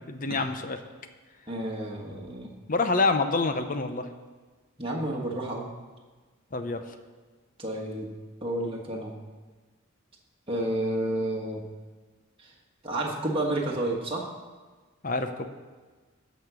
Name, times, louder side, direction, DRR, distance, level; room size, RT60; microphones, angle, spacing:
voice 1, 0.1-0.8 2.7-4.1 6.5-6.8 15.0-15.5, left 3 dB, 40° left, 8 dB, 0.7 m, -27 dB
voice 2, 1.5-2.5 4.8-5.7 7.6-8.1 8.4-9.1 10.5-11.6 12.4-12.5 12.8-14.3, right 1 dB, 25° right, -2 dB, 1.4 m, -30 dB
15.0 x 5.1 x 6.1 m, 1.4 s
head